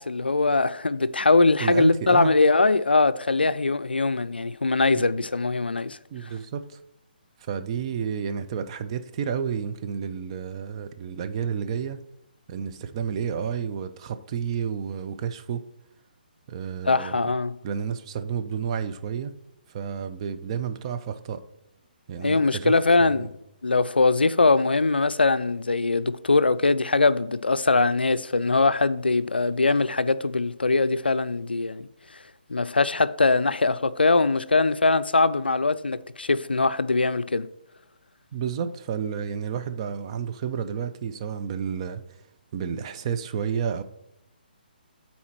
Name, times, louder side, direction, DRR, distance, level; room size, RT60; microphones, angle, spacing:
voice 1, 0.0-6.0 16.8-17.6 22.2-23.3 23.6-31.9 32.5-37.5, left 3 dB, 85° left, 0.3 m, -22 dB
voice 2, 1.6-2.3 4.9-5.3 6.1-6.8 7.5-12.0 12.5-15.6 16.5-17.2 17.6-19.3 19.7-21.4 22.1-22.7 23.0-23.3 38.3-42.2 42.5-43.8, right 7 dB, 35° right, 0.5 m, -31 dB
12.0 x 4.3 x 3.0 m
figure-of-eight pair, 140°, 5 cm